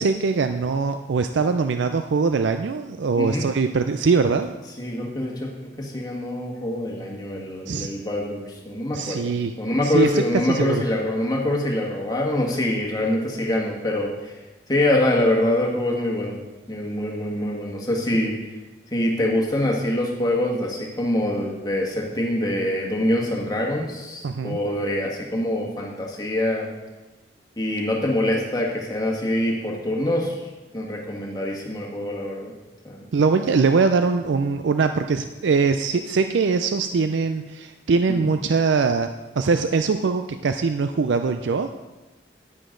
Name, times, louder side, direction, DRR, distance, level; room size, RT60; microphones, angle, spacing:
voice 1, 0.0-4.5 7.7-7.9 8.9-9.5 9.8-10.2 10.5-10.8 24.2-24.6 33.1-39.1 39.4-41.7, right 4 dB, 75° right, 8 dB, 0.4 m, -22 dB
voice 2, 4.8-14.4 14.7-16.4 16.7-18.3 18.9-26.7 27.6-30.4 30.7-32.5 32.8-33.1 38.2-38.3, left 1 dB, 20° left, -2 dB, 1.7 m, -25 dB
9.9 x 9.8 x 3.8 m, 1.1 s
head